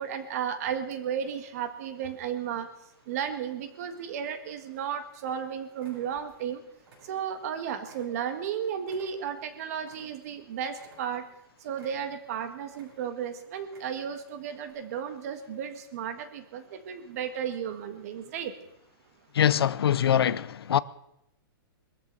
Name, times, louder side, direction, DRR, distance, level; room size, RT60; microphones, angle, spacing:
voice 1, 0.0-2.7 3.1-6.6 7.1-11.2 11.6-18.5, right 8 dB, 40° right, 1.6 m, -34 dB
sound 1, 5.3-5.4 5.8-6.5 6.8-7.5 7.9-10.4 10.7-11.4 11.7-12.3 12.7-13.3 13.6-14.2 14.6-14.7, right 2 dB, 85° right, 7.8 m, -57 dB
voice 2, 19.3-20.8, left 9 dB, 90° left, 0.6 m, -23 dB
22.0 x 14.0 x 4.0 m
hypercardioid pair, 165°, 12 cm